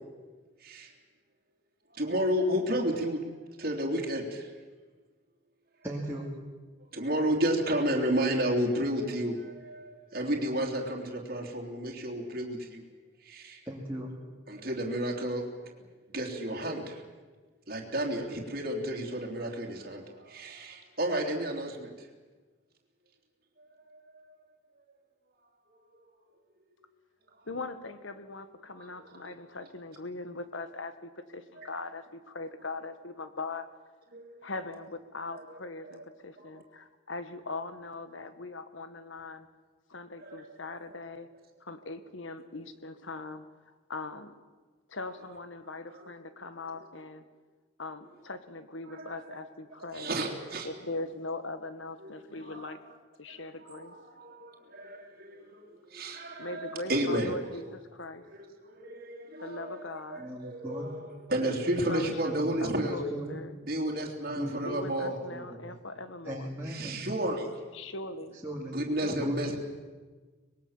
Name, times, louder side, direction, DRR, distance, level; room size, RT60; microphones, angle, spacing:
voice 1, 1.9-4.5 6.9-12.8 13.2-13.6 14.5-15.4 16.1-17.0 17.7-21.9 23.9-24.2 28.8-28.9 29.1-29.3 31.6-31.7 34.1-34.3 35.3-35.4 35.9-36.0 40.2-40.4 45.9-46.0 48.9-49.1 49.9-50.7 52.0-52.1 52.5-52.7 53.6-55.6 55.9-57.6 58.4-59.8 60.1-63.0 63.7-65.1 66.6-67.5 68.7-69.6, right 1 dB, 45° right, 0 dB, 3.2 m, -32 dB
voice 2, 5.8-6.3 13.6-14.1 60.2-60.9 61.5-61.9 62.3-63.4 64.3-64.7 65.0-65.8 66.2-67.1 68.4-68.7 69.1-69.6, right 1 dB, 10° right, -3 dB, 2.7 m, -38 dB
voice 3, 27.4-33.7 34.4-39.5 39.9-41.3 41.6-44.3 44.9-47.2 47.8-50.1 50.6-52.8 53.2-53.9 56.4-58.2 59.4-60.3 61.4-63.6 64.6-66.5 67.7-68.4 69.0-69.6, left 2 dB, 65° left, 11 dB, 1.7 m, -40 dB
25.0 x 21.0 x 7.3 m, 1.4 s
head